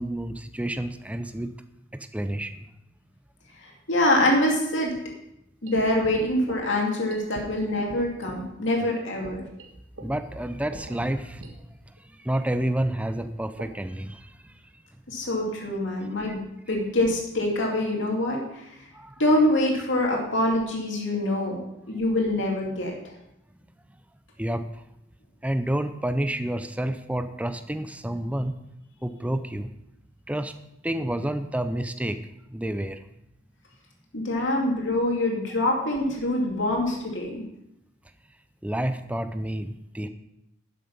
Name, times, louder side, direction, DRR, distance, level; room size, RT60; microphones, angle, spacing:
voice 1, 0.0-1.5 1.9-2.7 10.0-11.8 12.2-14.5 18.9-19.2 24.4-24.8 25.4-28.6 29.0-29.7 30.3-30.5 30.8-32.2 32.5-33.0 38.6-40.1, right 1 dB, 5° right, 10 dB, 0.5 m, -29 dB
voice 2, 3.6-4.9 5.6-9.4 15.1-16.4 16.7-18.7 19.2-21.6 21.9-22.9 34.1-37.4, left 1 dB, 65° left, -1 dB, 2.6 m, -25 dB
sound 1, 5.7-8.4 8.6-8.7 9.2-11.5 11.8-12.0 12.3-14.0, right 1 dB, 75° right, 1.5 m, -44 dB
11.5 x 7.4 x 5.5 m, 0.82 s
head